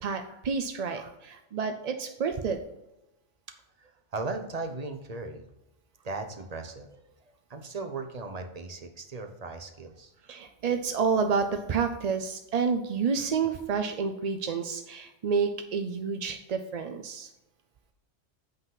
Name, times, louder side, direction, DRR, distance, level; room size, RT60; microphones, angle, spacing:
voice 1, 0.0-2.6 10.3-17.3, right 5 dB, 55° right, 6 dB, 0.4 m, -29 dB
voice 2, 3.8-5.4 6.0-7.0 7.5-10.1, right 3 dB, 35° right, 6 dB, 0.8 m, -37 dB
8.0 x 3.9 x 5.7 m, 0.91 s
omnidirectional pair, 1.2 m